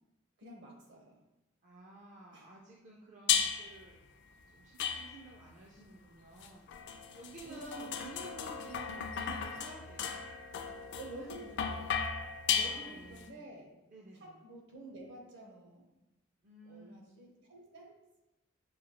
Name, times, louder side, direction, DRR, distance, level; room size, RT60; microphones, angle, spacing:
voice 1, 0.4-1.2 2.3-2.5 7.4-8.0 11.0-12.0 12.5-13.7 14.1-15.9 16.6-18.0, right 2 dB, 60° right, 0 dB, 0.9 m, -49 dB
voice 2, 1.6-3.9 4.5-10.1 11.2-11.4 12.5-13.5 13.9-14.4 16.4-17.1, right 2 dB, 35° right, -3 dB, 0.4 m, -53 dB
sound 1, 3.3-3.8 4.8-5.5 6.4-13.2, left 7 dB, 55° left, 0.4 m, -35 dB
6.3 x 2.3 x 2.9 m, 0.94 s
head